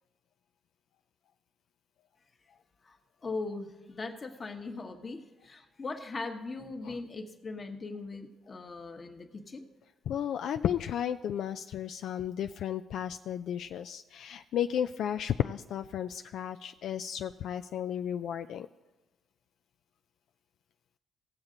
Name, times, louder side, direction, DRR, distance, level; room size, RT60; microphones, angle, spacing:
voice 1, 3.2-9.6, left 3 dB, 35° left, 5 dB, 1.2 m, -40 dB
voice 2, 10.1-18.7, left 9 dB, 75° left, 8 dB, 0.3 m, -33 dB
17.5 x 7.3 x 3.9 m, 1.2 s
cardioid pair, 90°, 0 cm